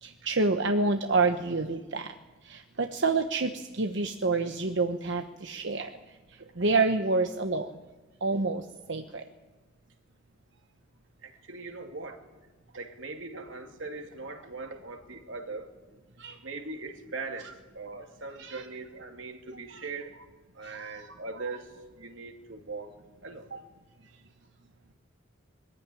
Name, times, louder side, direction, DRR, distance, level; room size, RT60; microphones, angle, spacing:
voice 1, 0.0-2.1 2.4-5.9 6.6-7.7 8.2-9.2 16.2-16.4 18.4-18.7 20.6-21.1, right 3 dB, 65° right, 6 dB, 1.1 m, -28 dB
voice 2, 11.2-12.3 12.7-15.7 16.4-20.3 20.5-23.0 23.2-23.7, right 3 dB, 85° right, 4 dB, 2.7 m, -40 dB
22.0 x 15.0 x 10.0 m, 1.3 s
head